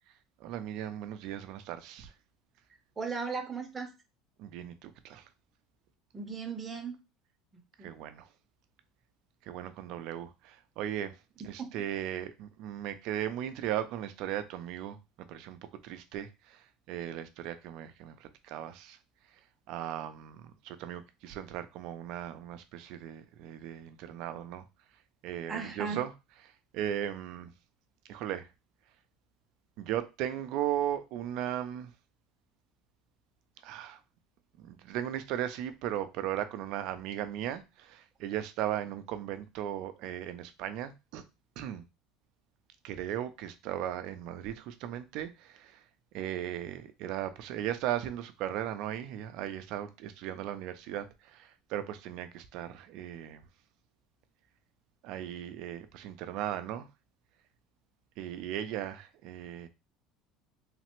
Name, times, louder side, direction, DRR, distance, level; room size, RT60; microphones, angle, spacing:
voice 1, 0.4-2.1 4.4-5.2 7.8-8.3 9.5-11.2 11.4-15.0 15.3-15.6 15.8-16.6 16.9-19.0 19.7-24.6 25.2-26.1 26.7-27.5 28.1-28.5 29.8-31.9 33.6-34.0 34.6-41.2 41.6-41.8 42.8-45.8 46.1-51.1 51.3-53.4 55.0-56.9 58.2-59.7, right 11 dB, 65° right, 0.4 m, -37 dB
voice 2, 3.0-3.9 6.1-7.0 7.5-8.0 11.6-11.7 25.5-26.0, right 5 dB, 20° right, 0.7 m, -37 dB
3.2 x 2.0 x 3.0 m
cardioid pair, 130°, 0 cm